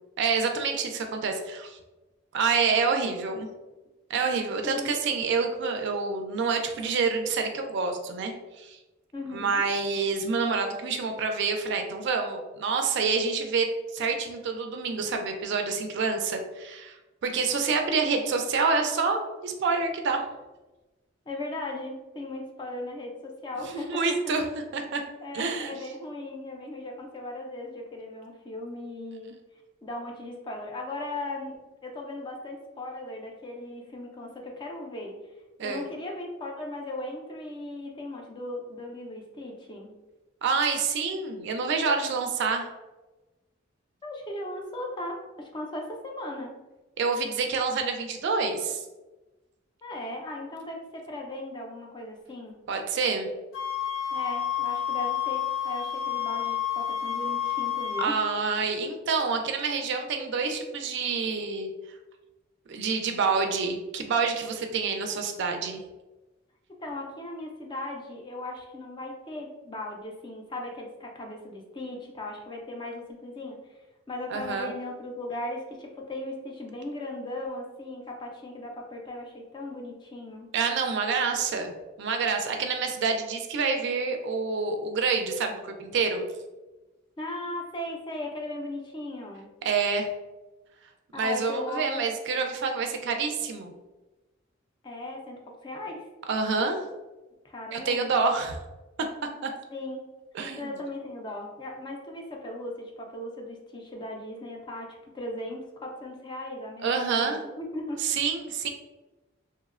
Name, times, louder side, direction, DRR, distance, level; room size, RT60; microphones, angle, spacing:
voice 1, 0.2-1.8 2.3-3.5 4.1-8.8 9.3-17.0 17.2-20.2 23.7-24.4 24.7-25.0 25.3-25.7 35.6-35.8 40.4-42.7 47.0-48.8 52.7-53.3 58.0-61.7 62.7-65.8 74.3-74.7 80.5-81.7 82.0-86.3 89.6-90.1 91.1-93.7 96.3-96.8 97.7-98.6 99.4-99.5 100.3-100.7 106.8-107.4 108.0-108.7, right 4 dB, 60° right, 5 dB, 0.3 m, -27 dB
voice 2, 4.6-4.9 9.1-9.6 21.3-24.3 25.2-29.3 29.8-31.6 31.8-35.1 35.6-39.9 44.0-46.5 49.8-52.6 54.1-58.2 66.8-80.5 87.2-89.5 91.1-92.0 94.8-96.1 97.4-98.2 99.7-100.1 100.6-108.1, left 1 dB, 25° left, 1 dB, 0.3 m, -37 dB
sound 1, 53.5-58.1, left 9 dB, 75° left, 0.7 m, -29 dB
2.9 x 2.0 x 2.3 m, 1.1 s
head